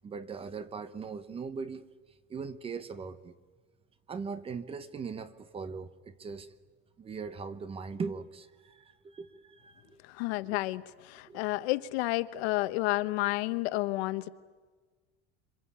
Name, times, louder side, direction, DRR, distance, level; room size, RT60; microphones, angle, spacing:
voice 1, 0.0-1.9 2.3-3.4 4.1-6.5 7.0-10.0 10.4-10.6 11.3-11.4, right 5 dB, 20° right, 0.9 m, -40 dB
voice 2, 10.0-14.3, left 19 dB, 75° left, 1.2 m, -31 dB
26.5 x 25.0 x 8.5 m
cardioid pair, 165°, 31 cm